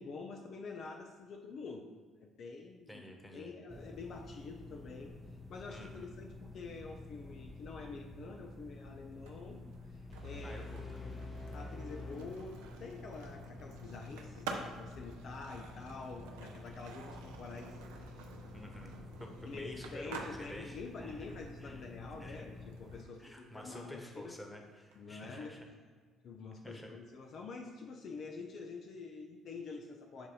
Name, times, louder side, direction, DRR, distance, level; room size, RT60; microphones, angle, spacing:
voice 1, 0.0-3.1 3.3-5.1 5.5-11.3 11.5-18.3 19.4-24.3 24.9-25.6 26.2-30.3, left 4 dB, 60° left, 3 dB, 0.5 m, -47 dB
voice 2, 2.9-3.5 5.7-6.1 10.4-10.9 11.1-11.3 18.5-21.3 21.6-21.8 22.2-22.4 23.2-25.7 26.6-26.9, left 1 dB, 10° left, 2 dB, 1.2 m, -50 dB
sound 1, 3.7-23.0, left 2 dB, 20° right, 0.6 m, -50 dB
Skateboard, 9.1-25.0, right 4 dB, 85° right, 0.5 m, -51 dB
sound 2, 10.1-13.1, left 2 dB, 35° left, 0.8 m, -47 dB
6.8 x 2.6 x 5.6 m, 1.5 s
hypercardioid pair, 60°, 0 cm